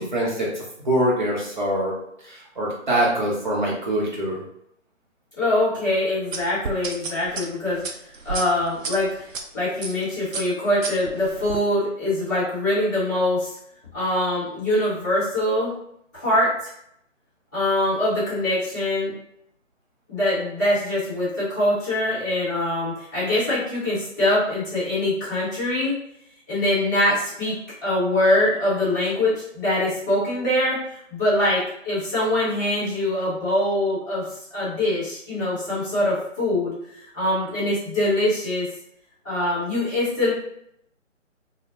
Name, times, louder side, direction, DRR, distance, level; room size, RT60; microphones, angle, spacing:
voice 1, 0.0-1.9 2.2-4.4, right 1 dB, 40° right, -3 dB, 0.7 m, -24 dB
voice 2, 5.4-7.8 8.2-9.1 9.5-13.5 13.9-15.7 16.1-16.5 17.5-19.1 20.1-25.9 26.5-27.5 27.8-30.8 31.1-34.3 34.5-36.7 37.1-38.7 39.2-40.3, left 1 dB, 15° left, -12 dB, 0.8 m, -23 dB
sound 1, 6.3-9.4 9.8-10.0 10.3-11.6, right 4 dB, 85° right, 0.5 m, -32 dB
2.1 x 2.0 x 2.9 m, 0.74 s
figure-of-eight pair, 160°, 38 cm